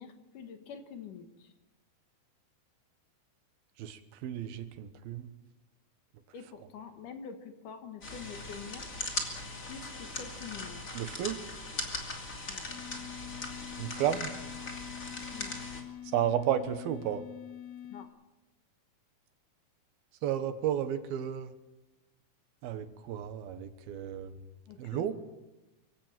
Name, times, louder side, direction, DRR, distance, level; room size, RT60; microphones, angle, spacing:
voice 1, 0.0-1.5 6.3-8.9 9.7-11.1 12.5-12.7 15.3-15.6 17.9-18.1 24.7-25.1, left 6 dB, 65° left, 7 dB, 2.9 m, -46 dB
voice 2, 3.8-5.3 10.9-11.4 13.8-14.3 16.0-17.2 20.2-21.5 22.6-24.4 24.8-25.1, right 10 dB, 85° right, 10 dB, 3.1 m, -32 dB
sound 1, 8.0-15.8, left 2 dB, 25° left, 2.6 m, -39 dB
sound 2, 12.7-18.1, left 10 dB, 90° left, 4.2 m, -45 dB
24.5 x 16.0 x 7.6 m, 1.0 s
omnidirectional pair, 4.2 m